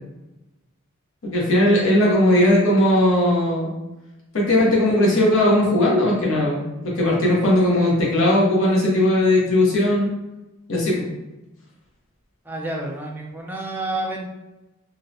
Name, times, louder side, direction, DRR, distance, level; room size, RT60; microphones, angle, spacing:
voice 1, 1.2-3.7 4.3-10.1 10.7-11.0, left 1 dB, 70° left, -4 dB, 0.7 m, -18 dB
voice 2, 12.5-14.2, right 2 dB, 10° right, -2 dB, 0.3 m, -29 dB
2.6 x 2.1 x 2.6 m, 1.0 s
head